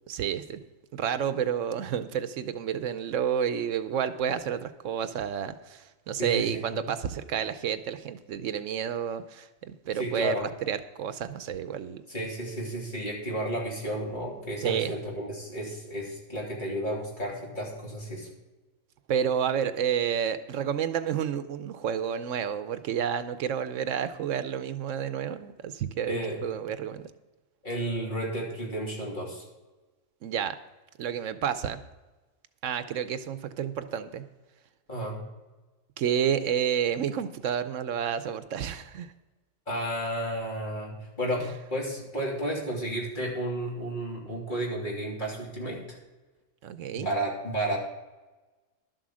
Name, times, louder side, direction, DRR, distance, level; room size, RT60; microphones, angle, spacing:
voice 1, 0.1-0.6 0.9-9.5 9.9-12.0 14.6-14.9 19.1-27.1 30.2-30.5 31.0-31.8 32.6-34.2 36.0-39.1 41.4-41.5 46.6-47.1, right 8 dB, 75° right, 12 dB, 1.0 m, -30 dB
voice 2, 6.2-6.6 10.0-10.4 12.1-18.3 26.1-26.4 27.6-29.4 34.9-35.2 39.7-46.0 46.9-47.8, right 1 dB, 40° left, -3 dB, 3.3 m, -32 dB
12.0 x 7.7 x 6.2 m, 1.2 s
omnidirectional pair, 1.3 m